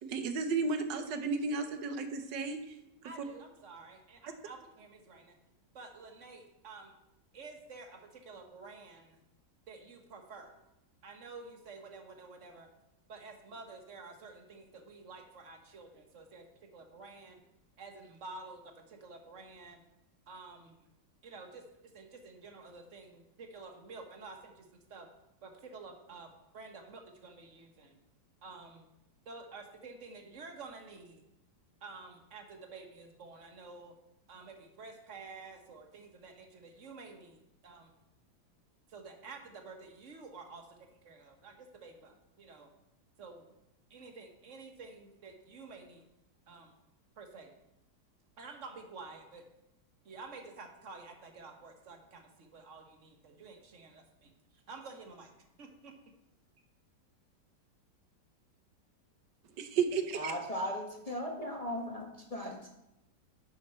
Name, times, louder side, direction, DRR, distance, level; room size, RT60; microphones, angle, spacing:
voice 1, 0.0-2.8 59.6-60.3, right 4 dB, 90° right, 7 dB, 1.5 m, -33 dB
voice 2, 3.0-5.4 5.7-6.9 7.3-9.2 9.7-10.6 11.0-12.7 13.1-16.5 16.7-17.4 17.8-19.8 20.3-20.8 21.2-21.6 21.9-25.1 25.4-28.0 28.4-28.9 29.2-31.2 31.8-34.0 34.3-37.9 38.9-42.7 43.2-43.4 43.9-46.0 46.5-46.7 47.2-47.5 48.4-49.4 50.0-54.3 54.7-55.3 55.6-55.9, right 3 dB, 50° right, 4 dB, 1.3 m, -50 dB
voice 3, 60.1-62.7, equal, 25° left, -1 dB, 1.0 m, -37 dB
10.0 x 6.4 x 4.3 m, 0.87 s
omnidirectional pair, 1.8 m